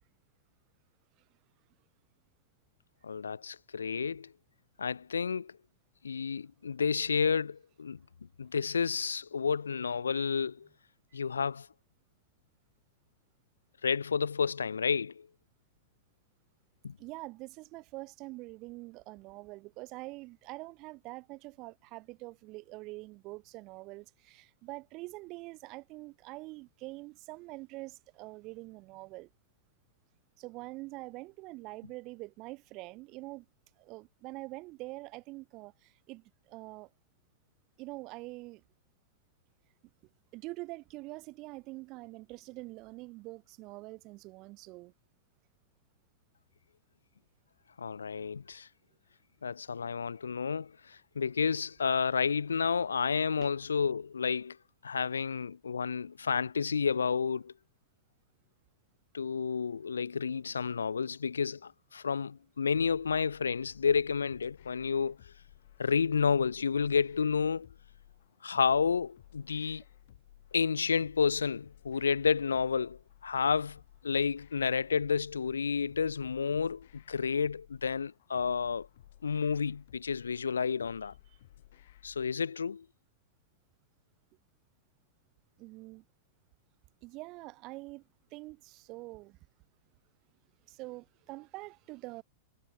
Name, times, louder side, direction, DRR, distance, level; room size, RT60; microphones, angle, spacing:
voice 1, 3.0-4.3 4.8-5.5 6.0-8.0 8.4-10.7 11.1-11.7 13.8-15.3 16.8-16.9 47.8-48.7 49.4-54.6 54.8-57.5 59.1-65.2 65.8-67.7 68.4-69.8 70.5-78.9 79.2-81.1 82.0-82.8, left 6 dB, 80° left, 0.4 m, -30 dB
voice 2, 17.0-29.3 30.4-33.4 33.8-36.9 37.8-38.6 40.3-44.9 53.4-53.5 85.6-86.0 87.0-88.0 88.3-89.4 90.7-92.2, right 22 dB, 40° right, 1.6 m, -45 dB
sound 1, 62.7-82.3, left 13 dB, 60° left, 2.7 m, -58 dB
figure-of-eight pair, 100°, 0 cm